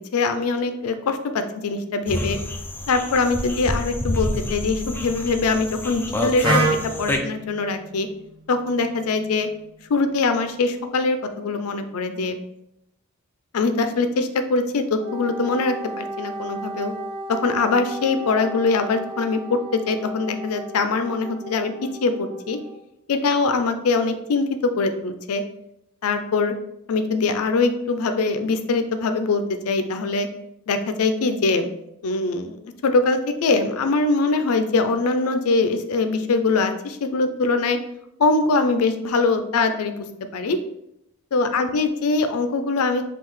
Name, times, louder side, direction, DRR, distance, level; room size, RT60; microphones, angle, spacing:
voice 1, 0.1-2.4 2.9-8.1 8.5-9.5 9.9-12.4 13.5-16.9 17.3-22.6 23.1-25.4 26.0-26.5 26.9-30.3 30.7-31.7 32.0-37.8 38.2-40.0 40.3-40.6 41.3-43.0, left 3 dB, 85° left, 8 dB, 0.4 m, -22 dB
sound 1, 2.1-7.2, left 1 dB, 10° left, 0.3 m, -28 dB
Wind instrument woodwind instrument, 6.4-10.3, right 2 dB, 25° right, 0.6 m, -28 dB
Wind instrument woodwind instrument 2, 15.0-22.7, right 1 dB, 45° right, 0.9 m, -35 dB
5.6 x 2.4 x 3.1 m, 0.81 s
head